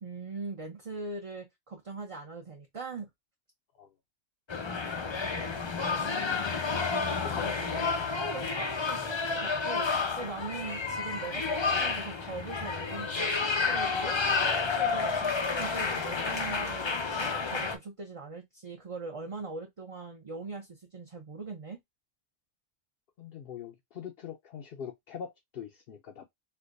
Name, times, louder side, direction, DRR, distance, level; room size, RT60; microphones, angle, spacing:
voice 1, 0.0-3.1 7.1-7.9 8.1-16.9 17.2-21.8, right 3 dB, 35° right, 0.7 m, -41 dB
sound 1, 4.5-17.8, left 4 dB, 40° left, 0.4 m, -30 dB
voice 2, 7.2-7.7 23.2-26.3, left 8 dB, 60° left, 0.8 m, -43 dB
4.5 x 2.3 x 2.5 m
omnidirectional pair, 1.2 m